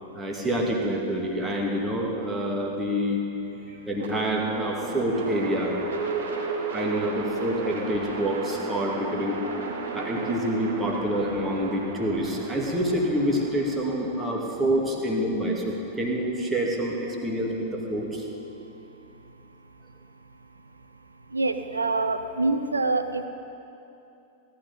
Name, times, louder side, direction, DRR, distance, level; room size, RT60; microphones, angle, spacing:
voice 1, 0.1-3.2 3.9-5.8 6.7-9.4 9.9-18.2, equal, 10° right, -2 dB, 2.5 m, -27 dB
sound 1, 3.9-16.1, right 4 dB, 65° right, 2.5 m, -34 dB
voice 2, 21.3-23.3, right 3 dB, 80° right, 9 dB, 0.8 m, -25 dB
18.0 x 12.0 x 5.3 m, 2.8 s
figure-of-eight pair, 90°, 0 cm